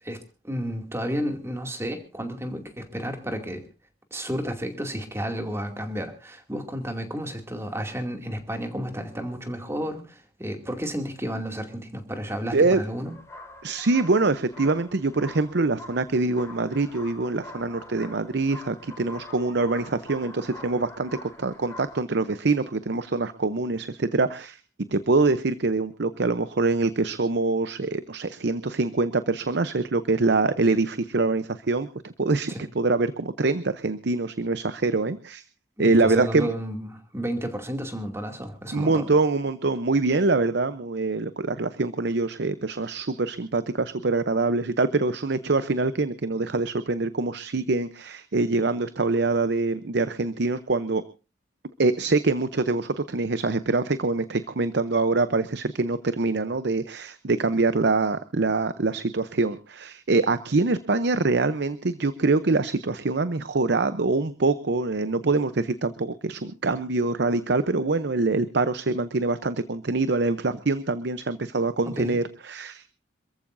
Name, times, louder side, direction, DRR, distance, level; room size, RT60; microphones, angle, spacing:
voice 1, 0.0-3.6 4.1-13.1 32.5-32.6 35.8-39.1 71.8-72.2, equal, 15° right, 5 dB, 2.4 m, -32 dB
sound 1, 12.9-22.0, left 2 dB, 15° left, 3.5 m, -45 dB
voice 2, 13.6-24.6 24.9-35.4 35.8-36.5 38.7-51.0 51.8-72.9, right 3 dB, 60° right, 13 dB, 0.7 m, -24 dB
27.0 x 14.5 x 2.6 m, 0.33 s
head